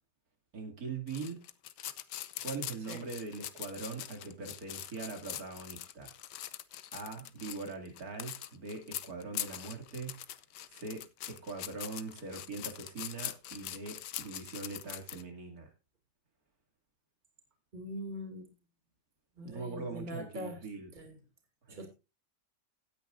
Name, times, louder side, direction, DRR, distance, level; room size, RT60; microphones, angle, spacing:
voice 1, 0.5-1.4 2.4-6.1 6.9-10.2 10.7-15.7 19.4-20.9 21.7-21.9, right 4 dB, 55° right, 3.0 m, -42 dB
sound 1, 1.1-15.2, left 12 dB, 80° left, 1.4 m, -43 dB
voice 2, 17.7-18.5 19.4-20.6 20.9-21.2 21.7-21.9, equal, 25° right, 2.7 m, -42 dB
17.0 x 9.5 x 2.6 m
omnidirectional pair, 1.8 m